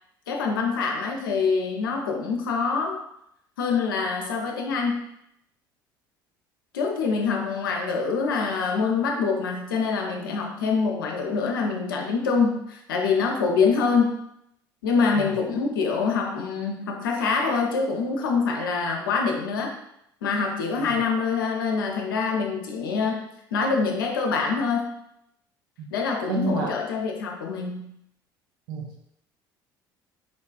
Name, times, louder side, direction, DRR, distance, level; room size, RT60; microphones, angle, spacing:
voice 1, 0.3-3.0 3.6-5.0 6.7-14.2 14.8-19.7 20.2-24.9 25.9-27.9, left 5 dB, 85° left, 1 dB, 0.5 m, -25 dB
voice 2, 26.3-26.7 28.7-29.1, right 2 dB, 65° right, -2 dB, 0.5 m, -29 dB
3.8 x 2.3 x 2.3 m, 0.77 s
hypercardioid pair, 60°, 11 cm